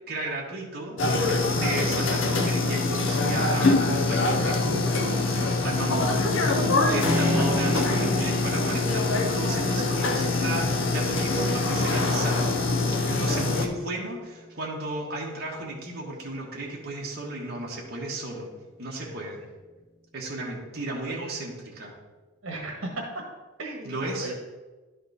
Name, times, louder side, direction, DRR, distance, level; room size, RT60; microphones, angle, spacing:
voice 1, 0.1-1.0 1.2-12.6 13.1-18.5 18.8-19.4 20.1-21.9 23.8-24.4, right 2 dB, 50° right, -3 dB, 1.5 m, -34 dB
sound 1, 1.0-13.7, left 3 dB, 60° left, 0.8 m, -24 dB
Keyboard (musical), 7.0-15.6, left 1 dB, 20° left, 2.5 m, -34 dB
voice 2, 19.0-19.3 21.1-21.3 22.4-23.2 23.6-24.4, right 2 dB, 80° right, 0 dB, 1.4 m, -36 dB
11.5 x 4.2 x 4.1 m, 1.2 s
head